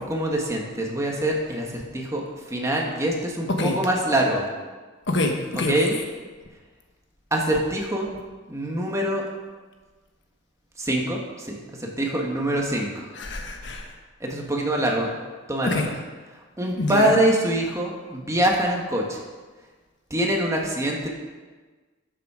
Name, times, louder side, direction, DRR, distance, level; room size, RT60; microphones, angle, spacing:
voice 1, 0.1-2.2 2.5-4.5 5.5-6.0 7.3-8.1 8.5-9.2 10.8-11.2 11.5-11.6 12.0-12.9 14.2-15.1 15.5-15.9 16.6-19.2 20.1-21.1, right 1 dB, 15° right, -1 dB, 1.7 m, -24 dB
voice 2, 3.5-3.8 5.1-5.9 13.1-13.9 15.6-15.9 16.7-17.2, left 2 dB, 65° left, 3 dB, 1.3 m, -26 dB
12.5 x 7.4 x 5.0 m, 1.3 s
head